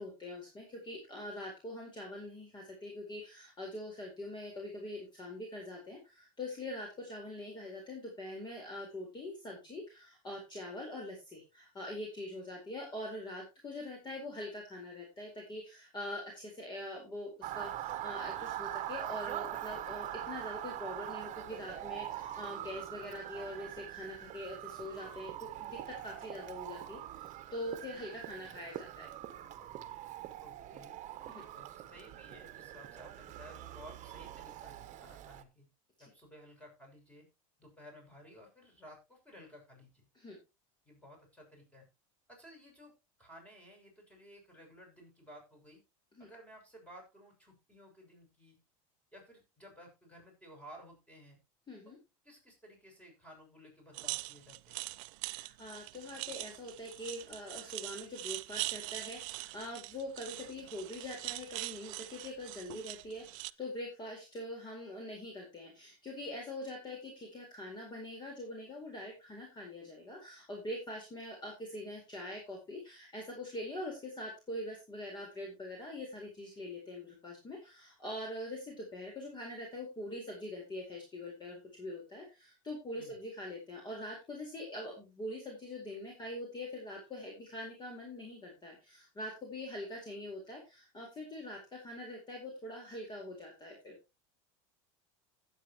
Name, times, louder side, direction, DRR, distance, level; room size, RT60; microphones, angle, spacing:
voice 1, 0.0-29.1 31.3-31.4 40.1-40.4 46.2-46.3 51.7-52.0 55.3-93.9, left 1 dB, 25° left, 0 dB, 4.4 m, -43 dB
Motor vehicle (road) / Siren, 17.4-35.4, right 12 dB, 45° right, 1.2 m, -43 dB
voice 2, 30.4-31.0 31.5-35.7 36.0-37.3 37.6-40.1 40.8-41.9 42.3-45.8 46.2-48.6 49.1-51.4 51.8-51.9 52.2-54.9 83.0-83.2, equal, 10° left, 1 dB, 6.7 m, -55 dB
sound 1, 53.9-63.5, right 24 dB, 65° right, 0.5 m, -42 dB
16.0 x 8.2 x 3.0 m, 0.26 s
supercardioid pair, 110°, 18 cm